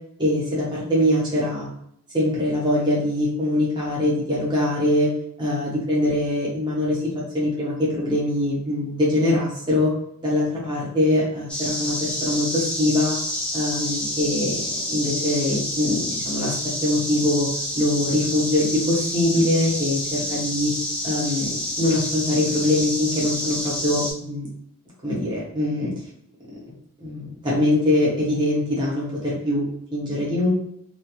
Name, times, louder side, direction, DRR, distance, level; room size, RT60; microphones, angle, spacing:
voice 1, 0.2-1.7 2.1-5.1 5.4-7.0 7.3-9.9 10.2-13.2 13.5-17.5 17.7-20.7 21.0-24.5 25.0-25.9 27.0-30.5, left 1 dB, 20° right, -6 dB, 0.8 m, -23 dB
sound 1, 11.5-24.1, left 1 dB, 5° left, 0.3 m, -28 dB
2.3 x 2.2 x 2.9 m, 0.71 s
head